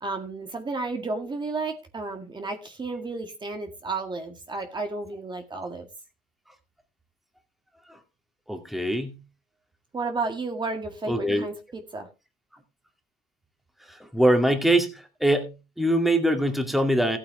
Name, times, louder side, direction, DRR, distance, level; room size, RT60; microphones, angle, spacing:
voice 1, 0.0-5.9 9.9-12.1, right 3 dB, 25° right, 1.9 m, -32 dB
voice 2, 8.5-9.2 11.1-11.5 13.9-17.2, right 1 dB, ahead, 2.2 m, -23 dB
15.0 x 8.7 x 3.2 m
cardioid pair, 110°, 17 cm